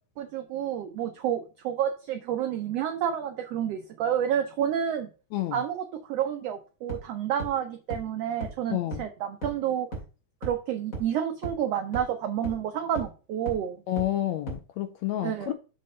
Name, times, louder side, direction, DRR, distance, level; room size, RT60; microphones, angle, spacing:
voice 1, 0.2-5.1 5.5-9.9 10.4-13.8 15.2-15.5, right 9 dB, 85° right, 1.4 m, -29 dB
sound 1, 6.9-7.0 7.4-7.5 7.9-8.0 8.4-8.5 8.9-9.0 9.4-9.5 9.9-10.0 10.4-10.5 10.9-11.0 11.4-11.5 11.9-12.0 12.4-12.5 13.0-13.1 13.5-13.6 14.0-14.1 14.5-14.6, right 2 dB, 25° left, 2.8 m, -34 dB
voice 2, 13.9-15.5, left 13 dB, 80° left, 1.6 m, -29 dB
6.5 x 4.2 x 5.3 m
omnidirectional pair, 3.6 m